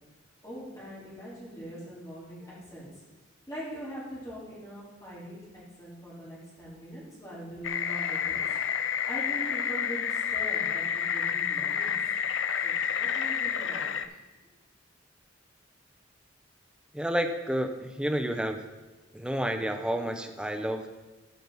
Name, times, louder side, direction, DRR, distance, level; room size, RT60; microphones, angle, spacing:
voice 1, 0.4-2.9 3.5-5.4 5.8-8.4 9.1-12.0 12.6-14.0, equal, 15° left, -9 dB, 3.5 m, -42 dB
sound 1, 7.6-14.1, left 8 dB, 65° left, 0.4 m, -29 dB
voice 2, 16.9-18.6 19.1-20.9, equal, 5° right, 5 dB, 0.5 m, -30 dB
14.0 x 5.3 x 4.0 m, 1.2 s
head